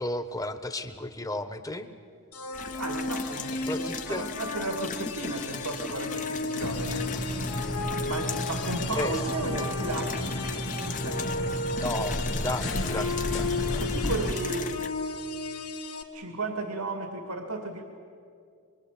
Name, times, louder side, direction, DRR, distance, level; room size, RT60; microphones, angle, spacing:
voice 1, 0.0-1.9 3.7-4.3 8.9-9.2 11.8-13.8, left 1 dB, 15° left, 9 dB, 1.1 m, -33 dB
sound 1, 2.3-16.0, left 3 dB, 80° left, 2.1 m, -35 dB
sound 2, 2.5-14.9, left 5 dB, 35° left, 0.8 m, -39 dB
voice 2, 2.8-7.1 8.1-10.6 10.9-11.2 13.8-14.7 16.1-17.8, right 2 dB, 85° right, 4 dB, 2.3 m, -34 dB
sound 3, 6.6-14.3, equal, 60° left, 2.3 m, -32 dB
24.5 x 23.5 x 8.5 m, 2.3 s
head